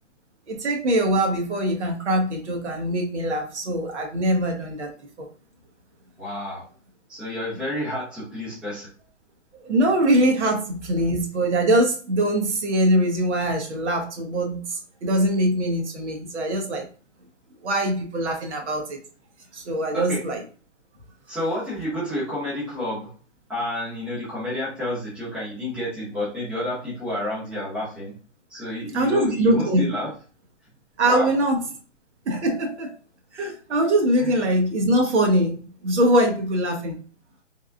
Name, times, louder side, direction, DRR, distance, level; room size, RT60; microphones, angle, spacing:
voice 1, 0.5-4.9 5.2-5.3 9.6-16.9 17.6-19.0 19.5-20.4 28.9-29.8 31.0-31.6 32.3-32.9 33.3-37.0, right 1 dB, 65° right, 2 dB, 1.1 m, -22 dB
voice 2, 6.2-6.6 7.1-8.9 19.9-20.2 21.3-23.1 23.5-28.1 28.5-30.1 31.1-31.3 34.2-34.4, left 1 dB, 5° right, -10 dB, 0.7 m, -30 dB
3.4 x 2.2 x 2.4 m, 0.38 s
hypercardioid pair, 155°, 37 cm